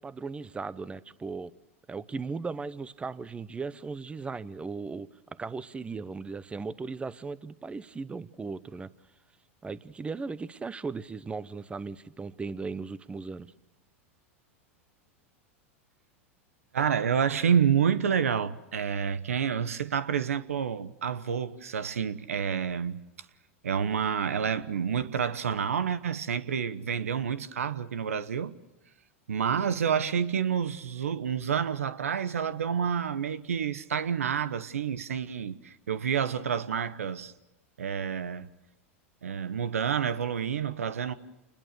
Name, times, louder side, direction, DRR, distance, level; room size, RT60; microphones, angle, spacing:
voice 1, 0.0-1.5 1.9-5.1 5.4-8.9 9.6-13.5, right 4 dB, 15° right, 1.0 m, -37 dB
voice 2, 16.7-23.0 23.6-28.5 29.3-37.3 37.8-38.5 39.2-41.1, right 7 dB, 85° right, 1.1 m, -29 dB
28.0 x 21.0 x 6.7 m
hypercardioid pair, 105°, 7 cm